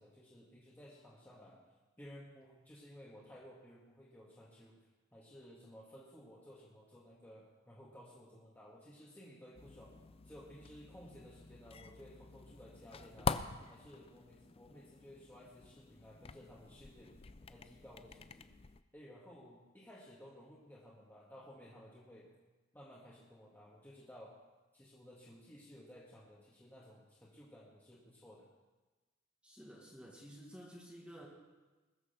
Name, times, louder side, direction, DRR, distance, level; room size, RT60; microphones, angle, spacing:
voice 1, 0.0-1.7 2.0-9.9 10.2-13.4 13.7-17.1 17.5-18.5 18.9-22.3 22.7-24.4 24.7-28.5, equal, 10° left, -6 dB, 1.9 m, -56 dB
sound 1, 9.5-18.8, left 4 dB, 30° left, 0.4 m, -45 dB
voice 2, 29.4-31.3, equal, 5° right, -3 dB, 1.7 m, -52 dB
21.0 x 7.0 x 6.8 m, 1.2 s
head